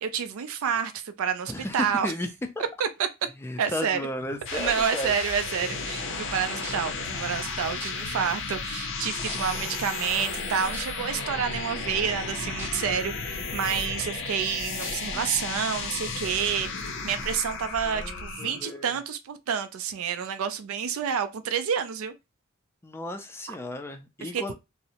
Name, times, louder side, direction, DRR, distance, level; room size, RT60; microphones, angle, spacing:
voice 1, 0.0-2.1 2.8-3.1 3.6-4.0 4.5-22.1 23.5-23.6 24.2-24.5, right 7 dB, 75° right, 0.4 m, -29 dB
voice 2, 1.5-2.3 2.6-2.7 3.4-5.1 8.9-9.8 12.4-12.6 15.0-15.4 17.5-17.6 17.8-18.9 22.8-24.5, left 1 dB, 10° left, 0.3 m, -35 dB
sound 1, 4.2-18.7, left 4 dB, 65° left, 0.5 m, -34 dB
sound 2, 6.6-6.9 7.8-7.9 8.7-8.8 9.2-9.6 10.7-10.8 12.6-12.7 13.2-13.3 14.8-14.9 15.7-15.8, right 1 dB, 10° right, 0.8 m, -38 dB
2.6 x 2.0 x 2.8 m
head